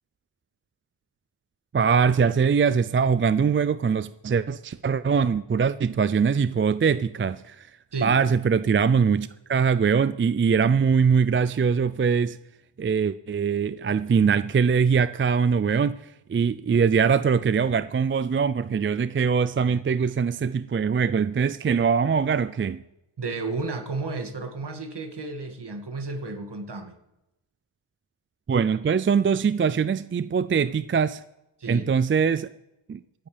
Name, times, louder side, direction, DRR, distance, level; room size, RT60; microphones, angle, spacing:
voice 1, 1.7-7.7 8.0-12.4 12.8-16.0 16.3-22.8 28.5-31.2 31.7-32.5 32.9-33.0, right 6 dB, 25° right, 0.4 m, -22 dB
voice 2, 23.2-27.0 31.6-31.9, right 3 dB, 55° right, 2.2 m, -32 dB
25.0 x 8.6 x 3.4 m
cardioid pair, 60°, 49 cm